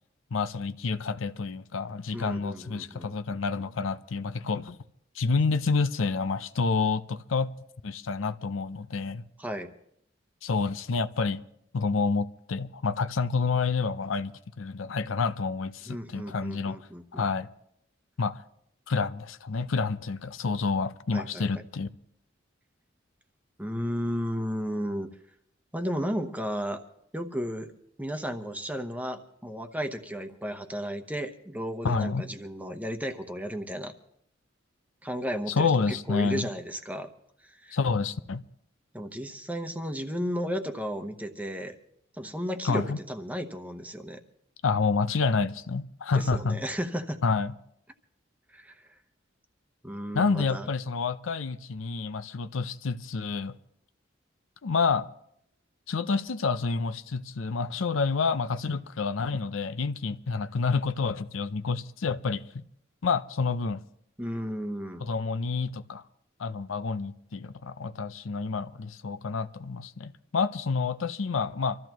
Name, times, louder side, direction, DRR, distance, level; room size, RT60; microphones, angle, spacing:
voice 1, 0.3-4.8 5.2-7.5 7.8-9.2 10.4-11.4 11.7-17.5 18.2-18.4 18.9-21.9 31.8-32.3 35.5-36.5 37.7-38.4 42.6-43.0 44.6-46.6 47.2-47.5 50.1-53.6 54.6-55.1 55.9-62.6 63.0-63.8 65.0-66.0 66.4-71.8, left 4 dB, 80° left, 0.6 m, -28 dB
voice 2, 2.1-3.4 9.4-9.7 15.9-17.2 21.1-21.4 23.6-25.1 25.7-26.8 27.1-27.7 28.0-33.9 35.0-37.1 37.6-37.8 38.9-41.8 42.2-44.2 46.1-47.2 48.5-48.8 49.8-50.7 64.2-65.0, equal, 10° right, 1.0 m, -34 dB
25.5 x 14.0 x 3.0 m
head